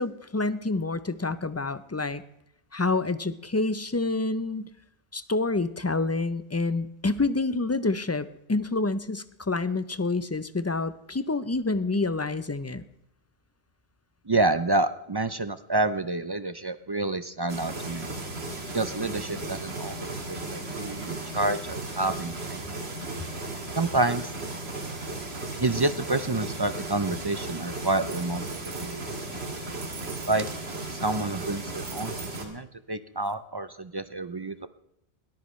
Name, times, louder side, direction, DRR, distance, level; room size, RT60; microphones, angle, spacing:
voice 1, 0.0-2.2 2.7-4.7 5.1-12.8, left 3 dB, 20° left, 14 dB, 0.4 m, -28 dB
voice 2, 14.3-18.1 18.7-22.6 23.7-24.3 25.6-29.2 30.3-30.5 30.9-34.7, right 2 dB, 30° right, 12 dB, 0.5 m, -28 dB
sound 1, 17.5-32.4, right 2 dB, 90° right, 2.4 m, -35 dB
sound 2, 28.0-28.9 29.8-30.9 31.7-32.4 33.3-33.4, right 6 dB, 65° right, 1.2 m, -45 dB
21.0 x 13.5 x 3.2 m, 0.80 s
omnidirectional pair, 1.0 m